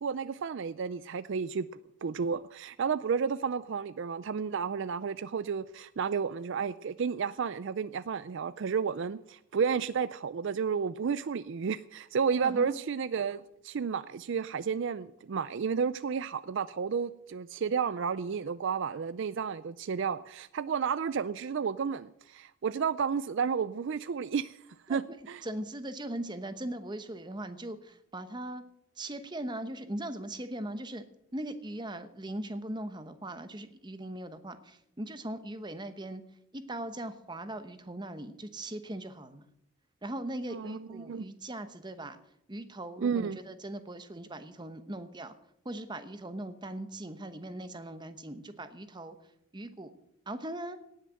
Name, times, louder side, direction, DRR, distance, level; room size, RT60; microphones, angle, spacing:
voice 1, 0.0-1.7 2.0-24.6 24.9-25.4 40.4-41.3 43.0-43.4, right 6 dB, 60° right, 15 dB, 0.4 m, -32 dB
voice 2, 25.4-28.6 29.0-31.0 31.3-36.2 36.5-39.4 40.0-42.2 42.5-45.3 45.6-49.1 49.5-49.9 50.3-50.8, right 1 dB, 20° right, 10 dB, 0.9 m, -39 dB
18.0 x 6.6 x 7.6 m, 0.77 s
head